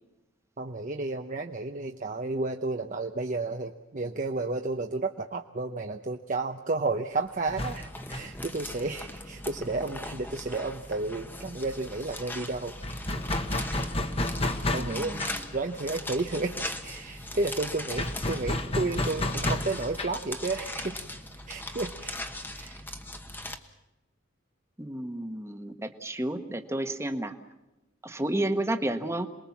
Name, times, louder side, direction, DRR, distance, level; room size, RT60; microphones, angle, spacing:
voice 1, 0.6-12.9 14.7-21.0 21.5-22.8, right 3 dB, 40° right, 4 dB, 0.8 m, -32 dB
sound 1, 7.1-23.6, left 1 dB, 10° left, 1.2 m, -40 dB
sound 2, 7.5-10.9 11.1-11.3 11.5-22.5, left 1 dB, 30° left, 1.4 m, -33 dB
voice 2, 14.7-15.2 24.8-27.3 28.0-29.3, right 1 dB, 15° right, 7 dB, 1.3 m, -31 dB
28.0 x 21.0 x 7.3 m, 1.0 s
head